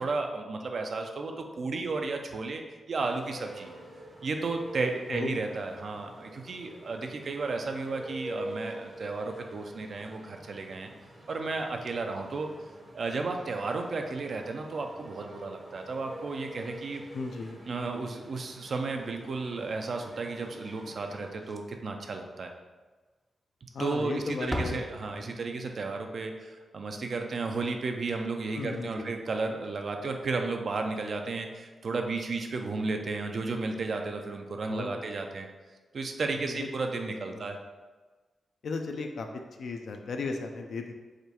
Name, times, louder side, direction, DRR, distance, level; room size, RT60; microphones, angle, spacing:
voice 1, 0.0-3.7 4.2-10.9 11.3-12.5 12.9-17.0 17.7-22.5 23.6-35.5 35.9-37.6, right 3 dB, 60° right, 4 dB, 0.4 m, -33 dB
sound 1, 2.9-21.3, equal, 35° right, 0.8 m, -46 dB
voice 2, 5.1-5.5 17.1-17.6 23.7-24.8 25.2-25.3 28.5-29.1 34.7-35.1 36.4-36.7 37.0-37.5 38.6-40.9, left 3 dB, 75° left, 4 dB, 0.4 m, -36 dB
Slam, 21.3-21.9 22.2-22.4 22.8-22.9 23.7-24.1 24.3-25.6 28.3-28.4 28.6-28.8 30.4-30.5, equal, 5° right, 0.4 m, -38 dB
4.8 x 2.3 x 2.9 m, 1.3 s
cardioid pair, 60°, 0 cm